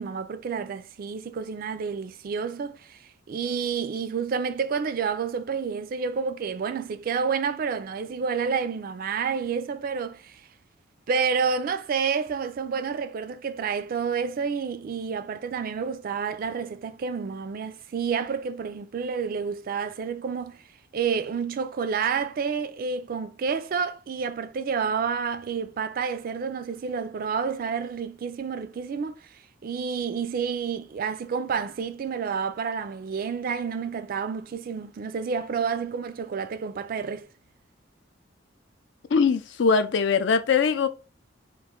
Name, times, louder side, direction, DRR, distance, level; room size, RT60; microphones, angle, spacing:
voice 1, 0.0-3.0 3.3-10.4 11.1-20.6 20.9-29.2 29.6-37.3, right 6 dB, 45° right, 0.3 m, -29 dB
voice 2, 39.1-40.9, left 5 dB, 60° left, 0.4 m, -21 dB
3.1 x 2.5 x 3.5 m
head